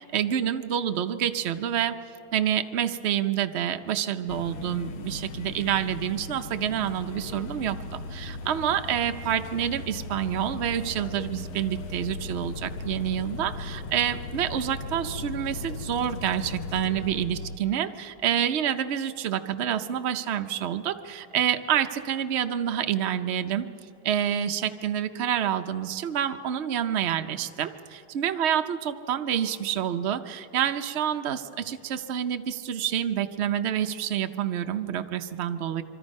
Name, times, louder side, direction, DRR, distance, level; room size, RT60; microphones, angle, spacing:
voice 1, 0.1-2.0 2.3-23.7 24.0-35.8, right 10 dB, 85° right, 7 dB, 0.5 m, -28 dB
sound 1, 4.3-17.6, left 3 dB, 85° left, 1.7 m, -37 dB
25.5 x 24.5 x 5.4 m, 2.7 s
omnidirectional pair, 2.2 m